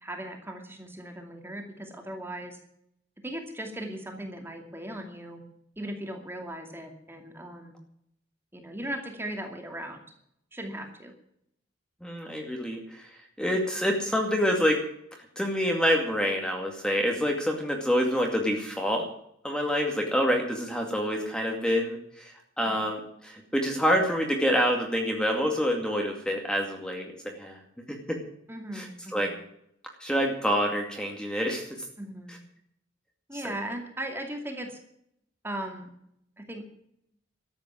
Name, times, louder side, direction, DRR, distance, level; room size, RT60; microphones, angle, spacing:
voice 1, 0.0-2.6 3.2-5.4 5.8-7.8 8.5-10.0 10.5-11.1 28.5-29.3 32.0-32.4 33.3-34.8 35.4-35.9 36.4-36.6, right 1 dB, 10° right, 3 dB, 2.5 m, -38 dB
voice 2, 12.0-13.1 13.4-14.8 15.4-19.1 19.4-27.1 27.4-27.6 28.1-28.2 28.7-28.9 29.1-29.3 30.0-31.7 33.4-33.5, equal, 5° left, 1 dB, 2.3 m, -27 dB
13.5 x 8.9 x 9.5 m, 0.70 s
head